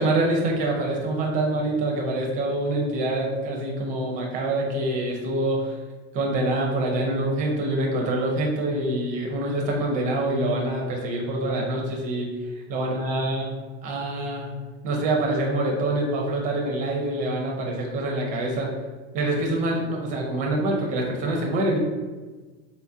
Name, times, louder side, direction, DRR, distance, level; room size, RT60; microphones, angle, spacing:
voice 1, 0.0-5.8 6.1-12.3 12.7-13.5 13.8-14.5 14.8-18.7 19.1-21.8, right 1 dB, 25° right, 0 dB, 0.5 m, -25 dB
4.0 x 2.3 x 2.6 m, 1.3 s
supercardioid pair, 165°, 31 cm